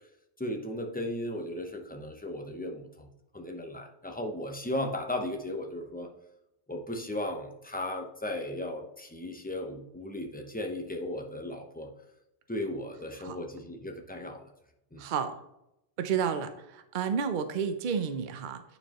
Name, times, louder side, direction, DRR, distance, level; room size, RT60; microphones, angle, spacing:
voice 1, 0.4-3.1 3.3-6.1 6.7-11.9 12.5-14.5 14.9-15.0, left 1 dB, 10° left, 2 dB, 0.8 m, -36 dB
voice 2, 15.0-15.3 16.0-18.6, right 7 dB, 55° right, 8 dB, 0.7 m, -31 dB
9.8 x 4.6 x 3.0 m, 0.85 s
omnidirectional pair, 1.1 m